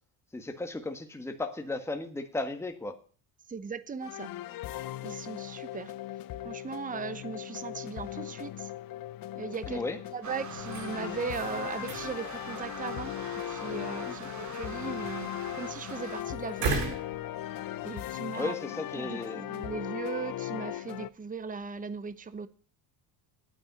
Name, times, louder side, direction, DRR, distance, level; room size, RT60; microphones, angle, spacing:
voice 1, 0.3-2.9 9.7-10.0 14.0-14.2 18.3-19.4, left 2 dB, 5° left, 1.5 m, -35 dB
voice 2, 3.5-4.3 5.0-5.9 6.4-8.7 9.3-9.8 10.1-13.1 13.5-15.3 15.5-17.0 17.8-18.5 19.0-22.5, right 5 dB, 15° right, 0.9 m, -38 dB
sound 1, 4.0-21.1, left 14 dB, 45° left, 0.7 m, -38 dB
sound 2, 10.2-16.2, right 6 dB, 40° right, 2.4 m, -44 dB
sound 3, 10.5-18.0, right 4 dB, 90° right, 6.9 m, -39 dB
9.0 x 8.8 x 9.6 m
cardioid pair, 120°, 46 cm